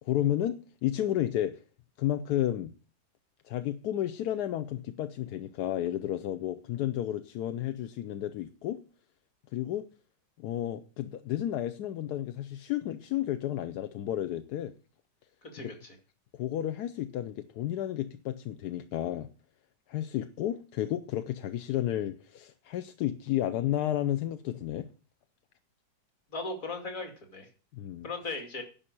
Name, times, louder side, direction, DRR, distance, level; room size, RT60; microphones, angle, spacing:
voice 1, 0.0-1.6 2.0-2.7 3.4-8.8 9.5-9.8 10.4-14.7 15.6-15.7 16.3-19.3 19.9-24.9 27.7-28.1, left 12 dB, 70° left, 11 dB, 1.1 m, -32 dB
voice 2, 15.4-16.0 26.3-27.5 28.0-28.6, left 3 dB, 45° left, 4 dB, 2.7 m, -38 dB
10.5 x 5.6 x 8.5 m, 0.38 s
omnidirectional pair, 2.0 m